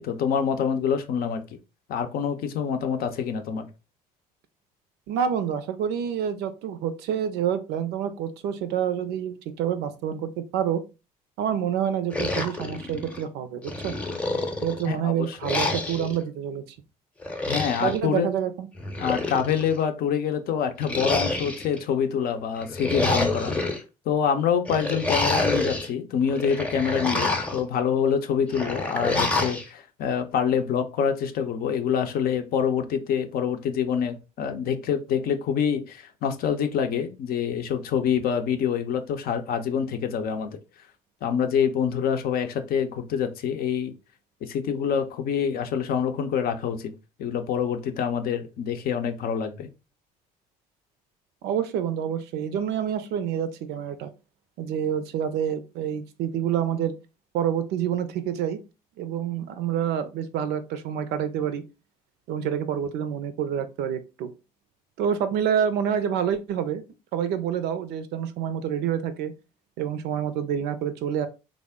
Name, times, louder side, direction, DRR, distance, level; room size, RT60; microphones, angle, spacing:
voice 1, 0.0-1.4 1.9-3.7 14.9-15.4 17.5-18.3 19.0-23.8 24.1-40.6 41.2-43.9 44.4-46.9 47.2-49.7, left 7 dB, 50° left, 0.6 m, -26 dB
voice 2, 5.1-10.8 11.4-13.9 14.6-16.6 17.8-18.7 51.4-54.1 54.6-56.9 57.3-58.6 59.0-61.6 62.3-64.3 65.0-66.8 67.1-69.3 69.8-71.3, right 9 dB, 60° right, 0.5 m, -27 dB
sound 1, 12.1-13.2 13.7-14.9 15.4-16.2 17.2-18.0 18.8-19.8 20.8-21.8 22.6-23.8 24.7-25.9 26.3-27.6 28.5-29.6, left 2 dB, 5° left, 0.8 m, -27 dB
3.4 x 2.0 x 3.5 m
figure-of-eight pair, 50°, 20 cm